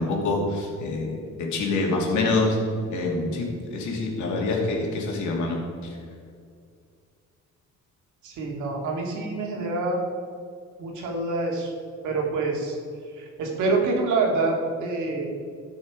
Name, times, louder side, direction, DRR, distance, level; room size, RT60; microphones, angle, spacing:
voice 1, 0.0-2.6 2.9-5.6, left 3 dB, 80° left, -1 dB, 2.6 m, -26 dB
voice 2, 8.2-10.0 10.8-11.7 12.0-12.8 13.1-15.3, right 3 dB, 85° right, 0 dB, 2.5 m, -26 dB
16.5 x 6.4 x 4.9 m, 2.2 s
cardioid pair, 150°, 29 cm